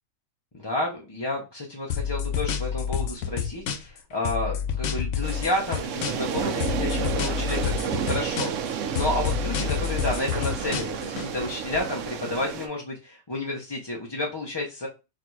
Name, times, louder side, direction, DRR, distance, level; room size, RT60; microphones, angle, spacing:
voice 1, 0.5-14.9, left 2 dB, 30° left, 0 dB, 0.5 m, -31 dB
sound 1, 1.9-4.0 4.2-6.3 6.6-8.7 8.9-11.3, left 8 dB, 70° left, 0.9 m, -28 dB
sound 2, 5.2-12.7, right 7 dB, 70° right, 0.9 m, -31 dB
sound 3, 6.3-12.1, right 4 dB, 90° right, 1.4 m, -43 dB
4.1 x 2.5 x 4.4 m, 0.28 s
omnidirectional pair, 1.4 m